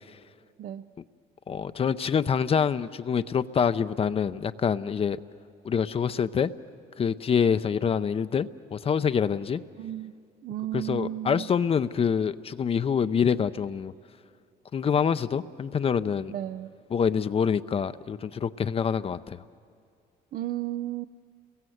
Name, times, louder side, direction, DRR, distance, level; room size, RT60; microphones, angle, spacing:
voice 1, 1.5-5.2 5.6-6.5 7.0-9.6 10.7-13.9 14.7-16.3 16.9-19.4, left 7 dB, 35° left, 12 dB, 0.6 m, -26 dB
voice 2, 9.8-10.1 10.4-11.5 16.3-16.7 20.3-21.1, right 12 dB, 55° right, 12 dB, 0.6 m, -33 dB
30.0 x 22.0 x 7.9 m, 2.4 s
cardioid pair, 110°, 17 cm